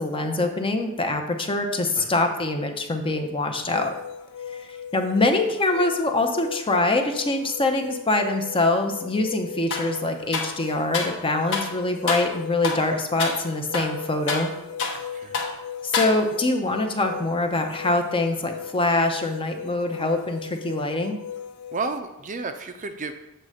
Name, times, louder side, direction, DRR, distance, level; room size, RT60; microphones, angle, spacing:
voice 1, 0.0-3.9 4.6-14.5 15.8-21.2, left 2 dB, 25° left, 5 dB, 0.6 m, -24 dB
sound 1, 3.7-22.0, left 8 dB, 75° left, 0.4 m, -38 dB
sound 2, 9.7-9.9 10.3-11.2 11.5-11.7 12.1-12.3 12.6-12.9 13.2-13.4 13.7-15.1 15.3-15.6 15.9-16.5, left 4 dB, 60° left, 0.9 m, -28 dB
voice 2, 14.9-15.4 21.7-23.1, right 4 dB, 35° right, 7 dB, 0.5 m, -32 dB
7.8 x 3.2 x 6.3 m, 0.95 s
head